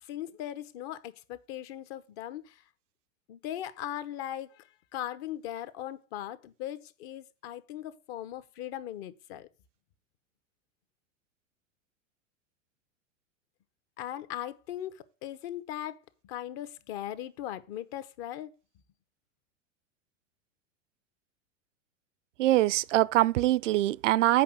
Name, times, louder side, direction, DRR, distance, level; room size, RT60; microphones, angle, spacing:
voice 1, 0.0-2.6 3.3-9.5 14.0-18.5, left 12 dB, 50° left, 1.2 m, -39 dB
voice 2, 22.4-24.4, right 15 dB, 70° right, 0.6 m, -23 dB
8.3 x 5.4 x 7.3 m
hypercardioid pair, 105°, 38 cm